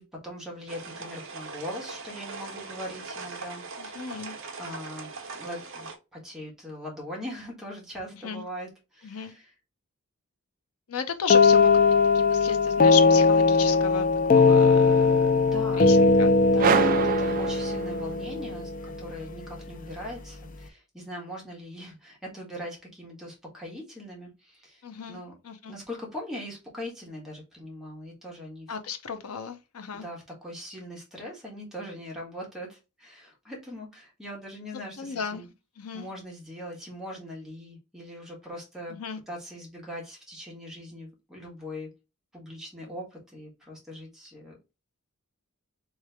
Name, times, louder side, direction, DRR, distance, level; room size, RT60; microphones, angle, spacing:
voice 1, 0.0-4.2 4.6-9.5 15.4-16.0 16.5-18.7 19.0-24.8 25.1-25.3 25.7-28.8 29.9-35.5 35.9-39.0 39.3-41.9 42.3-44.6, equal, ahead, 1.4 m, -41 dB
sound 1, 0.7-6.0, right 4 dB, 60° right, 0.9 m, -40 dB
voice 2, 3.8-4.4 8.2-8.4 9.0-9.3 10.9-11.8 12.1-16.9 24.8-25.2 25.4-25.7 28.7-30.1 35.0-35.4 35.8-36.1 38.9-39.2, left 7 dB, 80° left, 0.7 m, -35 dB
sound 2, 11.3-19.0, left 4 dB, 35° left, 0.4 m, -20 dB
sound 3, 16.6-18.4, right 6 dB, 40° right, 0.3 m, -26 dB
3.3 x 3.2 x 3.4 m
head